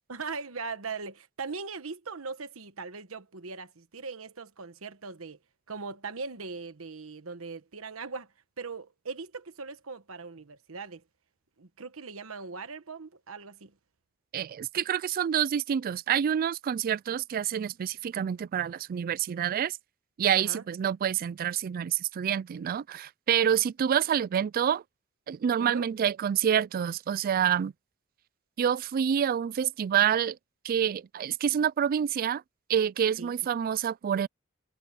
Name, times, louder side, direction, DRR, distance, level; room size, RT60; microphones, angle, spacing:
voice 1, 0.1-5.4 5.7-8.3 8.6-11.0 11.6-13.7 20.4-20.6 25.6-25.9 33.2-33.3, right 4 dB, 80° right, 1.2 m, -40 dB
voice 2, 14.3-19.8 20.2-24.8 25.3-27.7 28.6-30.4 30.6-32.4 32.7-34.3, right 8 dB, 45° right, 0.3 m, -27 dB
head